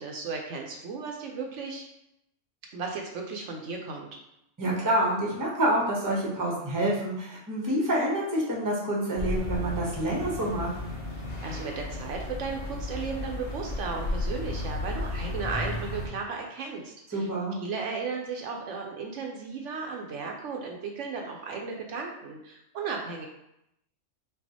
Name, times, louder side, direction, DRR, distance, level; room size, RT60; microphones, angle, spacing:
voice 1, 0.0-1.8 2.7-4.1 11.4-17.3 17.6-23.3, right 4 dB, 70° right, 1 dB, 0.9 m, -35 dB
voice 2, 4.6-10.7 17.1-17.6, right 1 dB, 20° right, -3 dB, 0.7 m, -27 dB
sound 1, 9.1-16.1, left 2 dB, 50° left, 1.0 m, -34 dB
5.4 x 2.4 x 2.7 m, 0.82 s
omnidirectional pair, 1.4 m